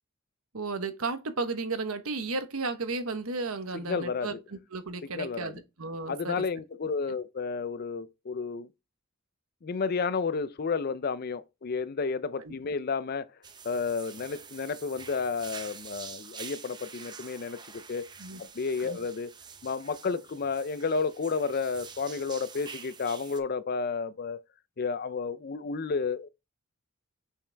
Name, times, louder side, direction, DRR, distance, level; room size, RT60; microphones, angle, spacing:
voice 1, 0.5-6.5 12.4-12.5 18.2-18.4 18.8-19.0, right 3 dB, 90° right, 1.1 m, -34 dB
voice 2, 3.9-4.4 5.0-5.5 6.1-8.7 9.6-13.3 13.6-18.1 18.4-19.3 19.6-24.4 24.8-26.3, left 5 dB, 45° left, 0.4 m, -31 dB
sound 1, 13.4-23.4, right 6 dB, 20° right, 0.6 m, -47 dB
6.5 x 5.8 x 3.4 m
head